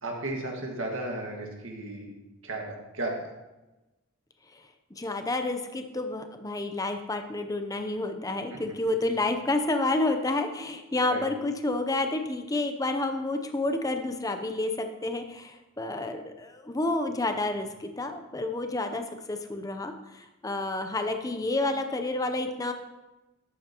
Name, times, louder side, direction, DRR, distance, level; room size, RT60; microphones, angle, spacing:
voice 1, 0.0-2.1 2.4-3.3 8.5-8.6 11.1-11.2, right 2 dB, 65° right, 0 dB, 1.8 m, -34 dB
voice 2, 4.9-22.7, left 2 dB, 15° left, 6 dB, 0.6 m, -30 dB
11.5 x 8.7 x 2.9 m, 1.1 s
head